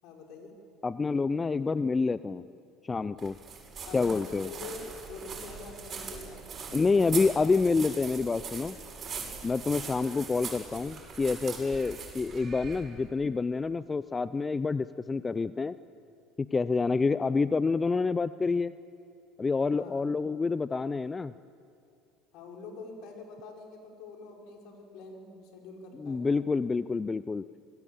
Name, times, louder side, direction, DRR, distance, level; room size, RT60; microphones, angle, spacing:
voice 1, 0.0-0.5 3.8-6.4 6.8-7.6 9.7-9.9 17.6-17.7 19.7-20.1 22.3-26.3, left 3 dB, 65° left, 1 dB, 4.8 m, -46 dB
voice 2, 0.8-2.5 2.8-3.4 3.9-4.5 6.7-8.8 9.4-15.8 16.4-18.7 19.4-21.3 26.0-27.4, left 4 dB, 25° left, 15 dB, 0.5 m, -28 dB
sound 1, 3.2-13.1, right 5 dB, 40° right, 7.2 m, -41 dB
25.5 x 18.0 x 8.7 m, 2.5 s
hypercardioid pair, 75°, 0 cm